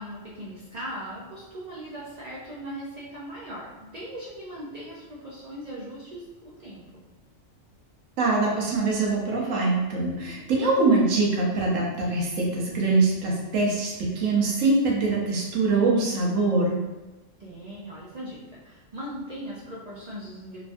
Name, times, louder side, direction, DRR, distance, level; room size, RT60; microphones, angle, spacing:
voice 1, 0.0-6.2 6.6-6.8 17.4-20.6, equal, 60° right, -7 dB, 0.4 m, -39 dB
voice 2, 8.2-16.8, right 3 dB, 85° right, -2 dB, 1.0 m, -23 dB
3.2 x 2.3 x 2.5 m, 1.1 s
omnidirectional pair, 1.3 m